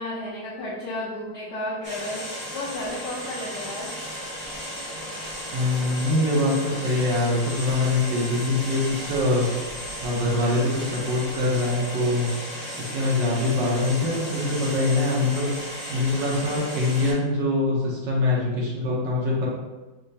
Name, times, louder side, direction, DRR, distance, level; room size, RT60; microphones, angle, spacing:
voice 1, 0.0-4.2, left 1 dB, 70° left, -8 dB, 1.2 m, -33 dB
sound 1, 1.8-17.1, equal, 10° right, 0.7 m, -35 dB
voice 2, 5.5-9.5 10.0-12.4 12.8-15.5 15.9-19.5, left 2 dB, 80° right, -5 dB, 1.5 m, -24 dB
5.3 x 2.0 x 2.7 m, 1.2 s
omnidirectional pair, 2.0 m